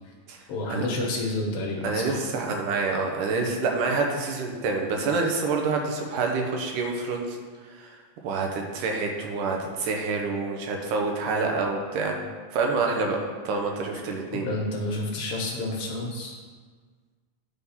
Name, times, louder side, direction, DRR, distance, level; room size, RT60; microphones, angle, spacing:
voice 1, 0.5-2.2 14.3-16.3, left 2 dB, 65° left, -1 dB, 1.6 m, -30 dB
voice 2, 1.8-7.4 7.7-8.0 8.2-12.2 12.5-14.5, right 4 dB, 85° right, 1 dB, 2.5 m, -27 dB
10.5 x 3.6 x 5.6 m, 1.5 s
omnidirectional pair, 3.6 m